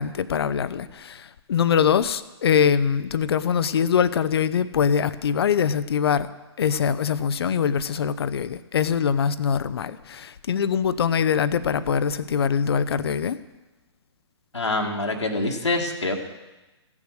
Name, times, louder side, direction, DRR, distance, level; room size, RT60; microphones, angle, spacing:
voice 1, 0.0-6.3 6.6-13.4, left 7 dB, 60° left, 15 dB, 0.7 m, -23 dB
voice 2, 14.5-16.1, left 2 dB, 90° left, 0 dB, 1.9 m, -25 dB
16.0 x 7.2 x 6.5 m, 1.1 s
figure-of-eight pair, 130°, 15 cm